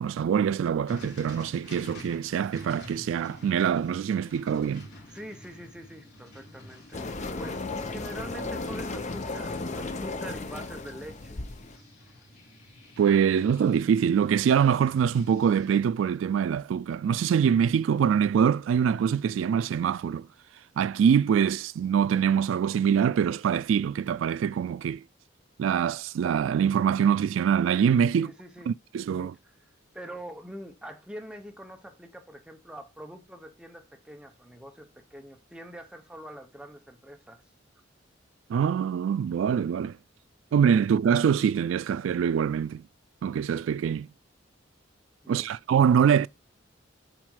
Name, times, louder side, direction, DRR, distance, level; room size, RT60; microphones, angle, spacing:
voice 1, 0.0-4.9 13.0-20.3 20.8-25.0 25.6-28.3 28.7-29.3 38.5-40.0 40.5-42.8 43.2-44.1 45.3-46.3, right 7 dB, 80° right, 0.3 m, -24 dB
sound 1, 0.9-15.8, left 1 dB, 60° left, 3.1 m, -49 dB
voice 2, 5.1-11.4 28.1-28.7 29.2-29.5 29.9-37.4 45.2-45.5, equal, 5° right, 0.9 m, -44 dB
sound 2, 6.9-11.8, left 3 dB, 40° left, 0.7 m, -35 dB
7.6 x 4.2 x 4.8 m
head